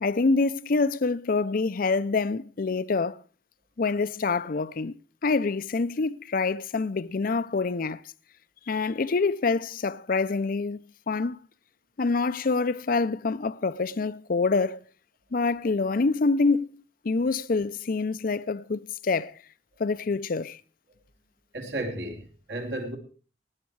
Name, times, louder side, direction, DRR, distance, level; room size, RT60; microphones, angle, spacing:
voice 1, 0.0-3.2 3.8-4.9 5.2-8.0 8.7-11.4 12.0-14.8 15.3-19.3 19.8-20.6, left 4 dB, 50° left, 0.5 m, -26 dB
voice 2, 21.5-23.0, right 1 dB, 70° right, 3.0 m, -33 dB
17.5 x 9.5 x 4.7 m
head